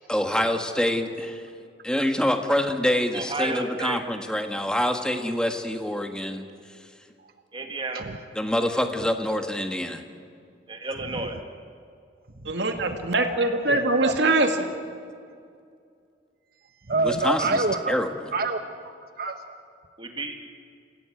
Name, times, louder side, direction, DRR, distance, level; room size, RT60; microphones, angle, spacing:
voice 1, 0.1-1.4 1.8-6.4 8.3-10.0 17.0-18.3, left 1 dB, 5° left, 5 dB, 1.6 m, -26 dB
voice 2, 3.1-4.0 7.5-8.0 10.7-11.4 20.0-20.3, right 3 dB, 30° right, 4 dB, 2.3 m, -31 dB
voice 3, 12.4-14.7, right 2 dB, 70° right, 4 dB, 2.5 m, -23 dB
voice 4, 13.7-14.1 16.9-17.9 18.3-19.4, right 3 dB, 55° right, 7 dB, 1.1 m, -27 dB
28.0 x 16.5 x 9.1 m, 2.3 s
head